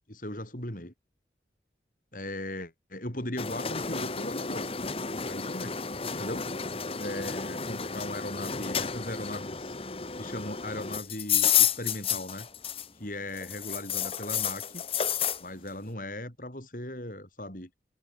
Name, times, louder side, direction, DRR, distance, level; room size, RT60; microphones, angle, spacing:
voice 1, 0.1-0.9 2.1-4.7 5.2-5.8 6.1-6.5 7.0-9.8 10.2-12.5 12.9-14.8 15.4-17.7, left 1 dB, 50° left, 6.2 m, -38 dB
sound 1, 3.4-13.0 13.3-15.4, left 8 dB, 35° left, 1.2 m, -31 dB
head